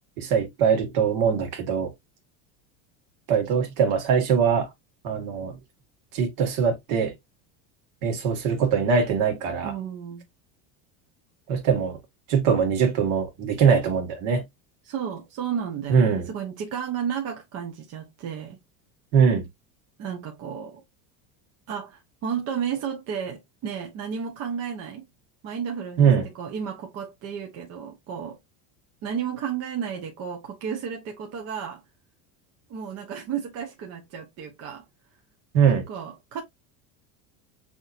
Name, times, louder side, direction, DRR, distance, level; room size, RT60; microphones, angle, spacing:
voice 1, 0.2-1.9 3.3-4.7 5.0-5.6 6.1-7.1 8.0-9.7 11.5-12.0 12.3-14.4 15.9-16.3 19.1-19.5 26.0-26.3 35.5-35.9, right 6 dB, 55° right, 1.9 m, -22 dB
voice 2, 9.6-10.2 14.8-18.6 20.0-20.8 21.7-25.1 25.4-26.1 26.4-28.4 29.0-31.8 32.7-34.8 35.9-36.4, right 7 dB, 40° right, 0.9 m, -32 dB
6.1 x 2.9 x 2.5 m
cardioid pair, 165°, 40 cm